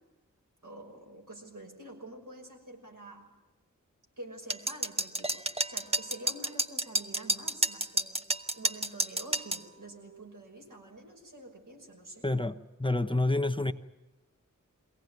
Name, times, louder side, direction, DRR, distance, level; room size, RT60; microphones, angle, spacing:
voice 1, 0.6-3.3 4.2-8.2 8.5-12.3, right 1 dB, 75° right, 0 dB, 6.0 m, -47 dB
sound 1, 4.5-9.6, right 1 dB, 20° right, 1.0 m, -30 dB
voice 2, 12.2-13.7, left 2 dB, 15° left, 7 dB, 0.8 m, -28 dB
22.5 x 17.5 x 9.4 m, 1.1 s
wide cardioid pair, 55°, 32 cm